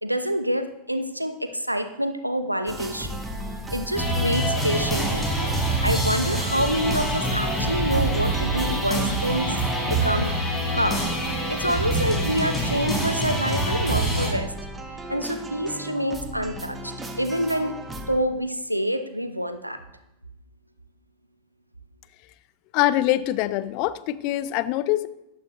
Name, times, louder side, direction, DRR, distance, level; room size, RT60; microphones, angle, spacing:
voice 1, 0.0-3.2 3.7-5.3 5.8-10.3 10.7-11.1 11.5-14.5 15.1-16.9 17.2-17.7 18.1-19.8, equal, 90° right, 9 dB, 0.9 m, -27 dB
sound 1, 2.7-18.2, equal, 15° right, 1.5 m, -35 dB
sound 2, 3.9-14.3, right 1 dB, 10° left, 4.5 m, -25 dB
voice 2, 22.7-25.1, left 15 dB, 45° left, 15 dB, 0.6 m, -24 dB
14.0 x 11.0 x 3.0 m, 0.89 s
figure-of-eight pair, 90°, 0 cm